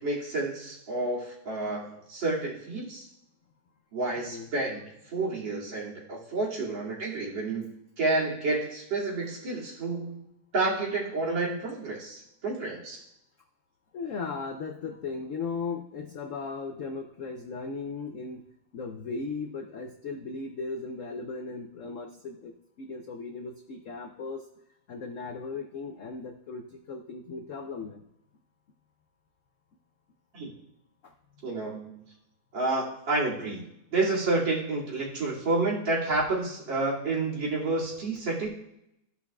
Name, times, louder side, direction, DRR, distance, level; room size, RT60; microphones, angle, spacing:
voice 1, 0.0-3.1 3.9-7.7 8.0-10.2 10.5-13.0 30.3-30.5 31.4-32.0 32.5-33.6 33.9-38.5, right 2 dB, 65° right, -6 dB, 3.4 m, -30 dB
voice 2, 4.2-4.5 13.9-18.4 18.7-22.5 22.8-24.4 24.9-28.0 31.0-31.1, left 4 dB, 70° left, 4 dB, 0.7 m, -37 dB
15.0 x 5.7 x 2.4 m, 0.80 s
omnidirectional pair, 2.2 m